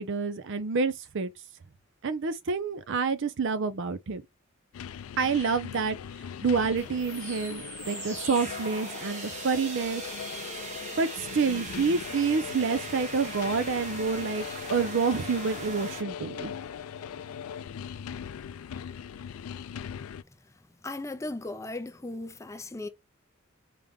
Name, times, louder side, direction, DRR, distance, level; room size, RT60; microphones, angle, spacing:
voice 1, 0.0-1.3 2.0-4.2 5.2-6.0 6.4-10.0 11.0-16.5, right 5 dB, 60° right, 0.5 m, -28 dB
sound 1, 4.7-20.2, left 8 dB, 85° left, 0.4 m, -40 dB
sound 2, 6.8-16.0, right 3 dB, 35° right, 0.9 m, -40 dB
voice 2, 20.8-22.9, left 2 dB, 15° left, 0.4 m, -37 dB
5.0 x 2.2 x 3.5 m
head